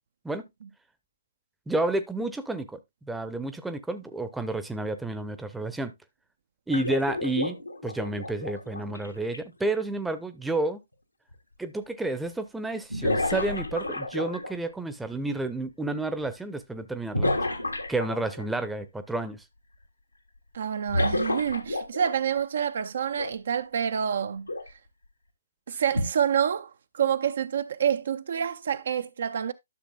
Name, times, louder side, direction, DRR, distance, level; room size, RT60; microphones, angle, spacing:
voice 1, 1.7-5.9 6.7-7.6 7.8-10.8 11.6-17.4 17.9-19.4, right 2 dB, 5° right, 0.7 m, -30 dB
sound 1, 6.7-9.4 11.3-11.4 12.9-14.7 17.1-18.4 20.9-22.4 23.1-23.3 24.5-24.7 25.9-26.0, left 1 dB, 90° left, 2.1 m, -30 dB
voice 2, 20.5-24.5 25.7-29.5, right 8 dB, 50° right, 0.5 m, -27 dB
12.5 x 6.6 x 2.3 m
figure-of-eight pair, 135°, 0 cm